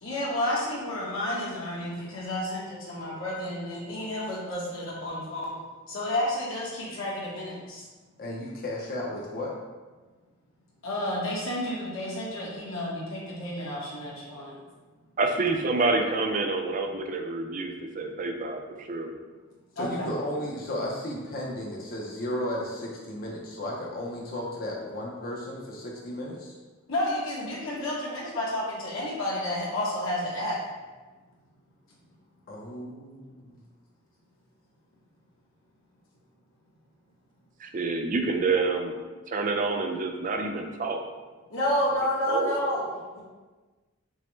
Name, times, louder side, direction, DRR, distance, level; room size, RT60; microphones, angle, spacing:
voice 1, 0.0-5.5 5.9-7.8 10.8-14.5 19.8-20.1 26.9-30.6 41.5-42.8 43.1-43.2, left 1 dB, 70° left, -5 dB, 1.0 m, -30 dB
voice 2, 8.2-9.6 19.8-26.5 32.5-33.6, left 1 dB, 40° left, -3 dB, 0.5 m, -34 dB
voice 3, 15.2-19.1 37.6-39.0 39.3-41.0 42.3-42.6, right 3 dB, 35° right, 4 dB, 0.4 m, -28 dB
6.1 x 2.0 x 3.2 m, 1.3 s
head